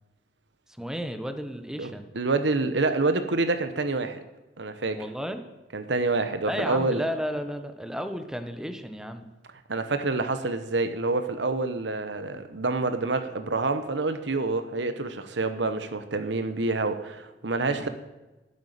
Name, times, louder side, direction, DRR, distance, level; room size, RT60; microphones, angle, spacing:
voice 1, 0.8-2.1 4.9-5.4 6.4-9.3 17.6-17.9, equal, 5° right, 8 dB, 1.1 m, -33 dB
voice 2, 2.1-4.2 4.6-5.0 5.7-7.0 9.7-17.9, right 3 dB, 70° right, 9 dB, 1.1 m, -27 dB
12.0 x 8.3 x 10.0 m, 1.1 s
head